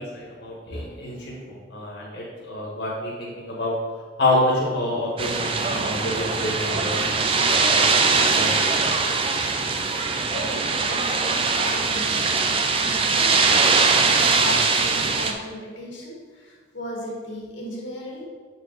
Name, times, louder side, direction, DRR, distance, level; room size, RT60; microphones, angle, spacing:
voice 1, 0.0-3.7 4.2-7.9 8.3-8.6, left 1 dB, 65° left, -5 dB, 1.5 m, -27 dB
sound 1, 5.2-15.3, right 4 dB, 30° right, 0.4 m, -21 dB
voice 2, 10.3-12.3 13.0-18.3, left 1 dB, 85° left, -2 dB, 1.8 m, -36 dB
7.6 x 4.6 x 4.0 m, 1.5 s
head